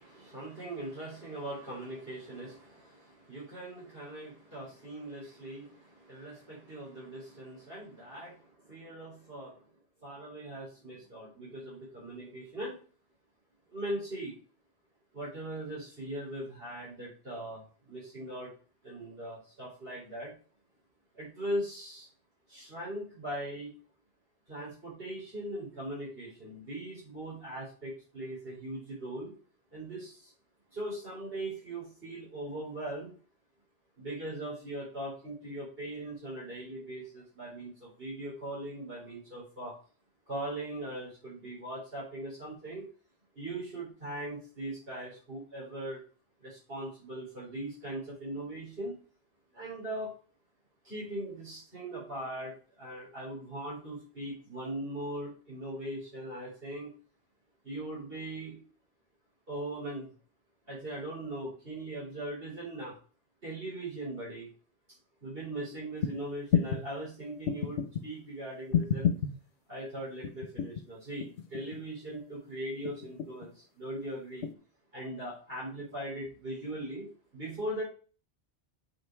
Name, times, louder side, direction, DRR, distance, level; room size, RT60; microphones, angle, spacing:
voice 1, 0.0-9.6 10.0-12.8 13.7-14.3 15.1-18.5 18.8-20.3 21.1-22.1 22.5-23.7 24.5-29.3 29.7-30.3 30.7-33.1 34.0-39.7 40.3-42.9 43.3-46.0 46.4-49.0 49.5-50.1 50.8-56.9 57.6-58.6 59.5-60.1 60.7-62.9 63.4-64.5 65.2-69.1 69.7-74.5 74.9-77.8, right 1 dB, 55° right, -7 dB, 4.4 m, -40 dB
sound 1, 66.0-66.1 66.5-66.8 67.5-68.0 68.7-69.3 70.2-70.8 71.2-71.8 72.9-73.5 74.4-74.5, left 8 dB, 75° left, 1.1 m, -29 dB
8.8 x 5.4 x 4.6 m, 0.39 s
omnidirectional pair, 1.2 m